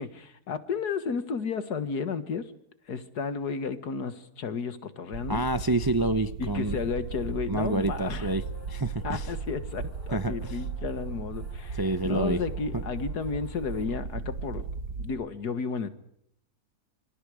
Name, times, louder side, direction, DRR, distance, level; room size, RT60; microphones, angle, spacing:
voice 1, 0.0-2.5 2.9-5.4 6.4-8.3 9.0-14.7 15.0-15.9, left 5 dB, 70° left, 11 dB, 2.1 m, -33 dB
sound 1, 5.1-15.1, right 5 dB, 70° right, 2.0 m, -36 dB
voice 2, 5.3-6.8 7.5-9.3 10.1-10.3 11.7-12.4 12.7-12.8, right 2 dB, 20° right, 11 dB, 0.6 m, -28 dB
sound 2, 6.4-13.8, left 4 dB, 35° left, 4.2 m, -54 dB
26.5 x 26.0 x 5.0 m, 0.75 s
omnidirectional pair, 1.8 m